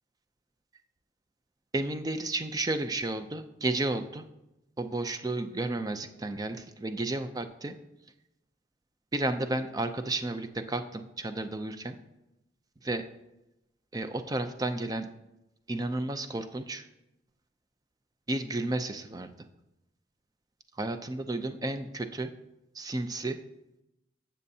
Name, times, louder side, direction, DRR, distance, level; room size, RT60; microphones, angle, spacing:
voice 1, 1.7-4.3 4.8-7.8 9.1-12.0 12.8-13.0 13.9-15.1 15.7-16.9 18.3-19.3 20.8-22.3 22.7-23.4, right 2 dB, 20° right, 8 dB, 0.4 m, -32 dB
12.5 x 7.4 x 2.7 m, 0.93 s
head